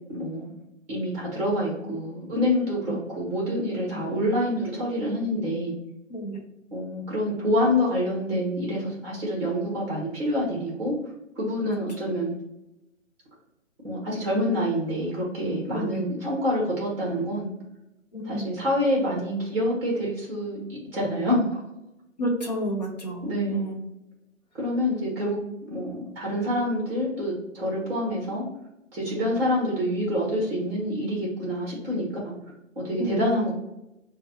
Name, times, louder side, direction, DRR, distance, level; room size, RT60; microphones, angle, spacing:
voice 1, 0.1-0.5 0.9-5.7 6.7-11.0 11.3-12.3 13.8-17.5 18.2-21.6 23.2-23.8 24.6-28.4 28.9-32.3 32.7-33.5, equal, 5° right, -5 dB, 0.9 m, -27 dB
voice 2, 6.1-6.4 11.6-12.0 15.7-16.0 18.1-18.5 22.2-23.8 33.0-33.4, right 1 dB, 35° left, 1 dB, 0.6 m, -31 dB
5.1 x 2.3 x 2.8 m, 0.88 s
figure-of-eight pair, 150°, 39 cm